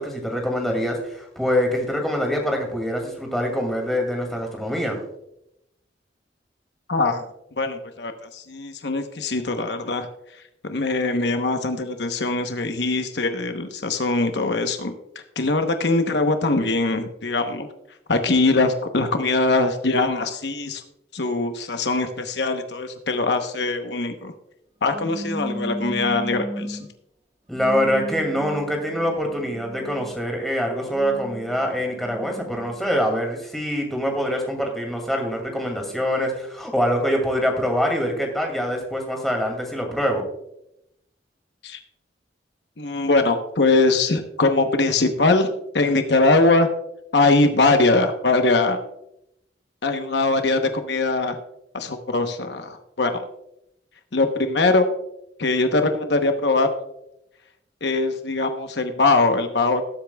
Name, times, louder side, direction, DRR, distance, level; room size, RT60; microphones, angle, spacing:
voice 1, 0.0-5.0 27.5-40.2, equal, ahead, 1 dB, 2.3 m, -24 dB
voice 2, 6.9-7.2 7.6-10.1 10.6-14.9 15.4-17.7 18.1-20.8 21.1-24.3 24.8-26.8 41.6-41.8 42.8-45.5 45.7-46.7 47.1-48.8 49.8-51.4 51.7-53.2 54.1-54.9 55.4-56.7 57.8-59.8, left 3 dB, 75° left, 6 dB, 0.9 m, -21 dB
sound 1, 24.9-26.9 27.5-30.2 30.8-33.1, right 1 dB, 35° right, 1.7 m, -35 dB
18.5 x 8.4 x 2.3 m, 0.81 s
head